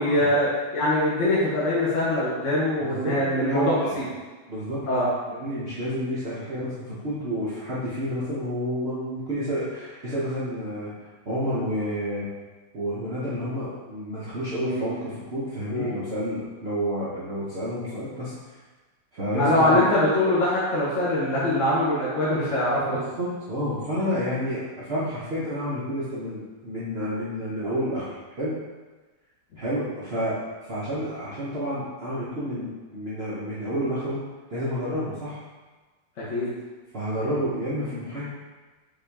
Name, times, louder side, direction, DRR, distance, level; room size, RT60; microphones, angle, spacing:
voice 1, 0.0-3.6 3.9-4.1 4.9-5.1 14.6-14.9 15.7-15.9 19.3-23.0 36.3-36.5, left 1 dB, 55° left, -8 dB, 0.9 m, -23 dB
voice 2, 2.8-4.0 4.5-4.9 5.3-12.3 12.7-18.6 19.1-19.8 22.9-28.6 29.6-34.2 34.5-35.4 36.9-38.3, equal, 65° right, -10 dB, 0.6 m, -30 dB
5.5 x 2.6 x 3.4 m, 1.3 s
omnidirectional pair, 2.2 m